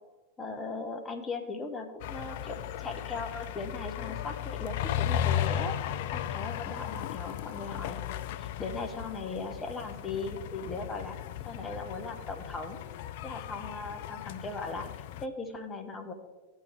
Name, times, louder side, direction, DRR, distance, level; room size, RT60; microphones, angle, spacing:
voice 1, 0.4-5.8 6.1-11.2 11.4-12.8 13.2-16.1, left 3 dB, 15° left, 4 dB, 1.0 m, -38 dB
sound 1, 2.0-15.3, left 11 dB, 50° left, 0.3 m, -36 dB
13.5 x 4.6 x 3.3 m, 1.4 s
figure-of-eight pair, 90°, 0 cm